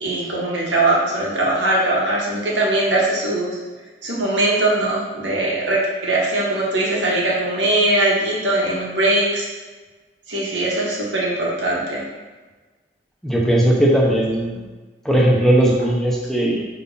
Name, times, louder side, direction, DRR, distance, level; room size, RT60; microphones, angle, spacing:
voice 1, 0.0-3.5 4.0-9.5 10.3-12.0, right 2 dB, 80° right, -5 dB, 1.8 m, -20 dB
voice 2, 13.2-14.5 15.0-16.6, right 1 dB, ahead, -4 dB, 0.8 m, -17 dB
5.1 x 4.2 x 5.5 m, 1.3 s
head